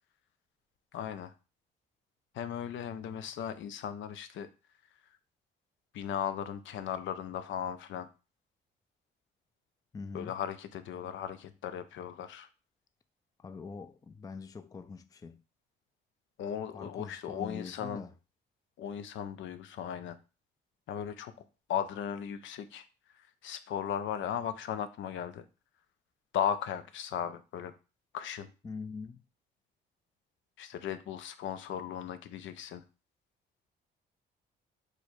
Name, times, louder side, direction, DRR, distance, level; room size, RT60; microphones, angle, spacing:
voice 1, 0.9-1.3 2.3-4.5 5.9-8.1 10.1-12.5 16.4-18.0 18.8-20.2 20.9-21.3 21.7-22.8 23.1-25.5 26.3-27.7 28.1-28.5 30.6-32.8, left 9 dB, 75° left, 0.5 m, -37 dB
voice 2, 9.9-10.4 13.4-15.4 16.7-18.1 28.6-29.2, left 4 dB, 20° left, 0.3 m, -43 dB
4.5 x 2.2 x 4.5 m
cardioid pair, 90°, 20 cm